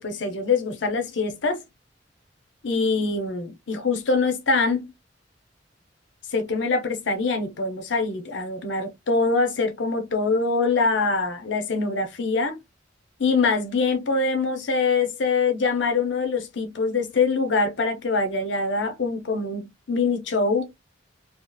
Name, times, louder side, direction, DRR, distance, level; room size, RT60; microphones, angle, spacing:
voice 1, 0.0-1.6 2.6-4.9 6.3-12.6 13.2-20.7, left 4 dB, 75° left, 0.7 m, -24 dB
2.7 x 2.4 x 2.3 m
head